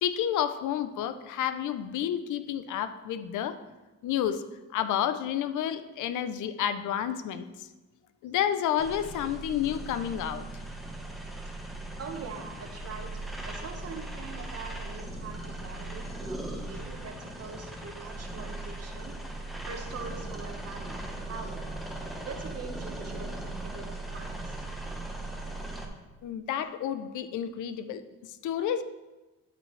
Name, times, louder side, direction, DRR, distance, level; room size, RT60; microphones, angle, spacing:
voice 1, 0.0-3.6 4.0-4.4 4.7-7.5 8.2-10.4 26.2-28.0 28.4-28.8, left 10 dB, 80° left, 11 dB, 0.6 m, -30 dB
sound 1, 8.8-25.9, right 2 dB, ahead, 1.2 m, -38 dB
voice 2, 12.0-19.2 19.7-21.7 22.3-24.6, right 5 dB, 55° right, 4 dB, 1.3 m, -43 dB
12.5 x 5.5 x 3.2 m, 1.1 s
cardioid pair, 90°, 30 cm